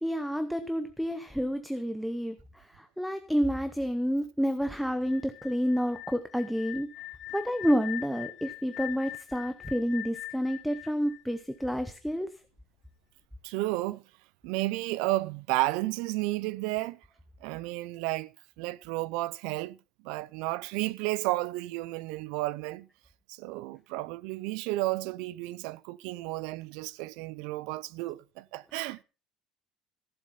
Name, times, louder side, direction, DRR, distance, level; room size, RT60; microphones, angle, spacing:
voice 1, 0.0-6.9 7.3-12.3, equal, ahead, 0.7 m, -29 dB
sound 1, 5.0-11.9, left 16 dB, 45° left, 0.9 m, -42 dB
voice 2, 13.4-14.0 14.4-17.0 17.4-19.8 20.0-22.9 23.3-29.0, right 19 dB, 75° right, 0.6 m, -32 dB
14.5 x 7.6 x 5.7 m
cardioid pair, 165°, 0 cm